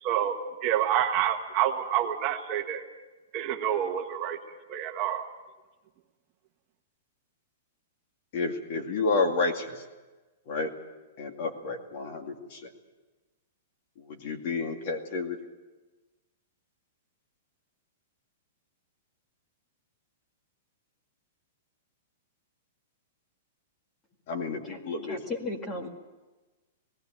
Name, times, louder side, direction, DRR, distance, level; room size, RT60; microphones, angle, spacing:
voice 1, 0.0-2.8 3.3-4.4 4.7-5.2, right 10 dB, 30° right, 4 dB, 1.3 m, -28 dB
voice 2, 8.3-9.8 10.5-10.7 11.2-12.7 14.0-15.4 24.3-25.2 25.8-25.9, left 3 dB, 45° left, 4 dB, 2.3 m, -30 dB
voice 3, 25.1-25.9, left 2 dB, 15° left, 4 dB, 2.0 m, -35 dB
18.5 x 16.0 x 8.9 m, 1.2 s
hypercardioid pair, 165°, 0 cm